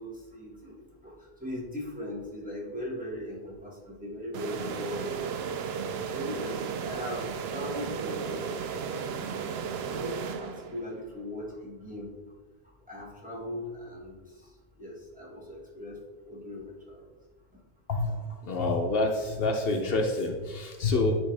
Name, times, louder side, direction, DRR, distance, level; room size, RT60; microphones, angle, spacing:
voice 1, 0.0-5.1 6.1-12.1 12.9-14.1 14.4-14.5 14.8-16.0 16.2-17.0, left 1 dB, 10° right, -5 dB, 1.5 m, -39 dB
sound 1, 4.3-11.0, right 6 dB, 80° right, 0.8 m, -34 dB
voice 2, 17.9-21.2, left 2 dB, 70° left, 2 dB, 0.9 m, -27 dB
10.0 x 3.5 x 3.3 m, 1.3 s
omnidirectional pair, 1.0 m